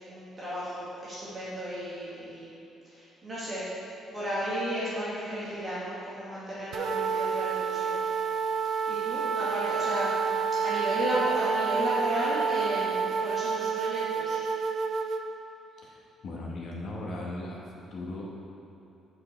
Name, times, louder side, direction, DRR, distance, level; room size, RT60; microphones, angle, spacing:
voice 1, 0.0-2.5 2.9-3.7 4.1-8.1 8.9-10.3 10.6-14.4, equal, 20° right, -10 dB, 1.2 m, -34 dB
sound 1, 6.7-15.2, right 6 dB, 50° right, 0.4 m, -29 dB
voice 2, 15.8-17.6 17.9-18.2, left 2 dB, 40° left, -3 dB, 1.1 m, -38 dB
7.9 x 4.7 x 4.3 m, 2.9 s
cardioid pair, 175°, 0 cm